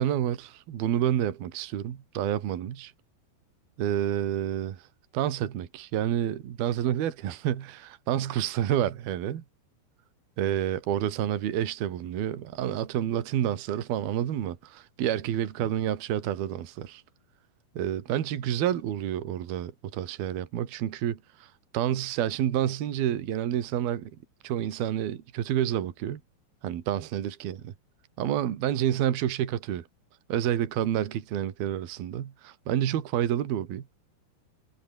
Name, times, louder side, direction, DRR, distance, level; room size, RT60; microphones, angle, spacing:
voice 1, 0.0-2.9 3.8-4.8 5.1-9.4 10.4-17.0 17.8-21.5 21.7-24.1 24.4-26.2 26.6-27.7 28.2-29.9 30.3-33.9, right 11 dB, 65° right, 3.8 m, -29 dB
omnidirectional pair, 5.1 m